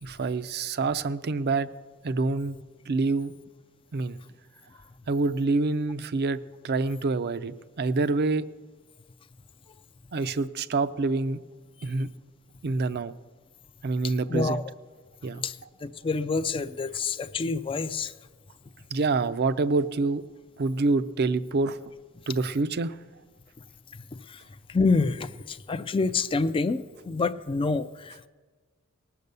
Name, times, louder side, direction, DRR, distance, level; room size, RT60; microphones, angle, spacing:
voice 1, 0.0-1.7 2.0-2.6 2.9-3.3 3.9-4.2 5.1-8.5 10.1-11.4 11.8-12.1 12.6-13.1 13.8-14.6 15.2-15.4 18.9-20.2 20.6-21.8 22.3-23.0, right 3 dB, 50° right, 15 dB, 0.5 m, -26 dB
voice 2, 14.0-14.6 15.4-18.1 23.9-24.4 24.7-28.3, left 4 dB, 25° left, 11 dB, 0.4 m, -28 dB
19.5 x 6.7 x 6.8 m, 1.4 s
head